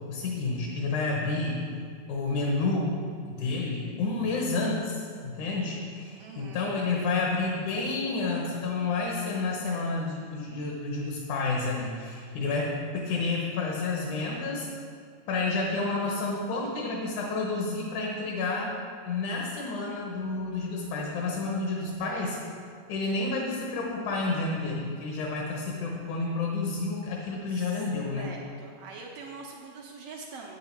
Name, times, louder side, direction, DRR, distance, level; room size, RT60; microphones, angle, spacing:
voice 1, 0.1-1.7 2.1-3.0 3.3-14.7 15.3-18.7 19.1-22.4 22.9-28.3, left 3 dB, 75° left, -1 dB, 2.4 m, -30 dB
voice 2, 6.2-6.7 22.0-22.6 27.5-27.8 28.2-30.6, right 4 dB, 75° right, 0 dB, 1.4 m, -44 dB
8.7 x 8.5 x 4.4 m, 2.2 s
omnidirectional pair, 3.6 m